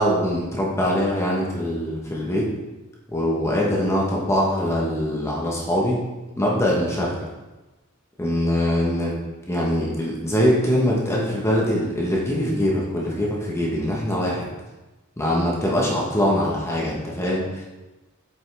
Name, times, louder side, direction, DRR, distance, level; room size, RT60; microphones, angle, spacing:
voice 1, 0.0-2.5 3.1-6.0 6.4-7.1 8.2-9.1 9.5-14.5 15.2-17.6, equal, 15° left, -4 dB, 1.1 m, -23 dB
7.8 x 5.4 x 3.3 m, 1.1 s
head